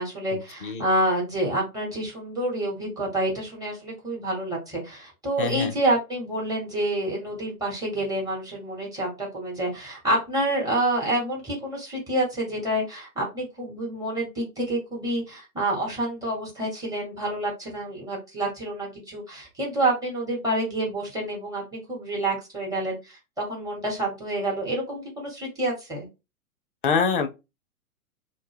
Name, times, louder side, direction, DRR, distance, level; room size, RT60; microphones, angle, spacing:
voice 1, 0.0-26.1, right 1 dB, 10° right, 0.9 m, -28 dB
voice 2, 5.4-5.7 26.8-27.3, left 5 dB, 40° left, 0.4 m, -24 dB
2.1 x 2.0 x 3.2 m
figure-of-eight pair, 110°, 44 cm